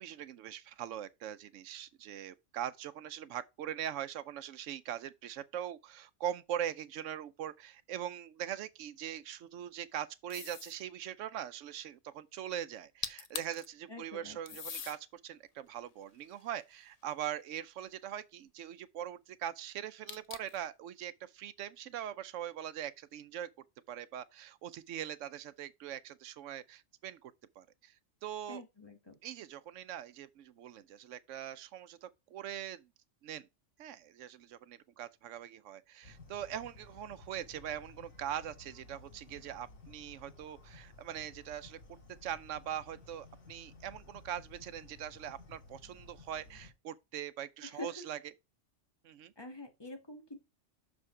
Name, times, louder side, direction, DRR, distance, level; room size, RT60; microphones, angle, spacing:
voice 1, 0.0-23.5 23.9-28.0 28.2-28.6 29.2-32.9 33.2-33.5 33.8-48.2 49.0-49.3, right 10 dB, 80° right, 0.9 m, -42 dB
sound 1, 10.3-10.8 12.8-12.9 13.0-13.7 14.5-15.0 15.7-17.1 20.1-20.6, left 6 dB, 45° left, 0.5 m, -43 dB
voice 2, 13.9-14.4 28.5-29.2 47.6-48.0 49.4-50.4, left 2 dB, 20° left, 1.3 m, -46 dB
sound 2, 36.0-46.7, left 3 dB, 75° left, 2.2 m, -55 dB
6.4 x 5.0 x 4.8 m
omnidirectional pair, 1.3 m